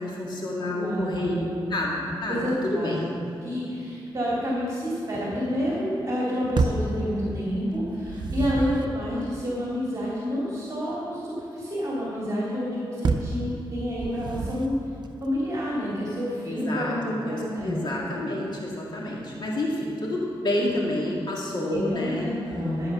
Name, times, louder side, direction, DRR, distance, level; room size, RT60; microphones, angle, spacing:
voice 1, 0.0-3.0 16.4-22.3, left 1 dB, 55° left, -3 dB, 2.0 m, -29 dB
voice 2, 0.6-1.5 2.3-3.0 3.4-14.8 15.2-17.8 21.7-22.9, equal, 35° right, -7 dB, 2.6 m, -29 dB
sound 1, 6.6-7.0 7.9-8.9 13.0-13.4 14.0-14.8, right 4 dB, 55° right, 0.7 m, -27 dB
12.5 x 8.3 x 6.1 m, 2.5 s
wide cardioid pair, 120°, 9 cm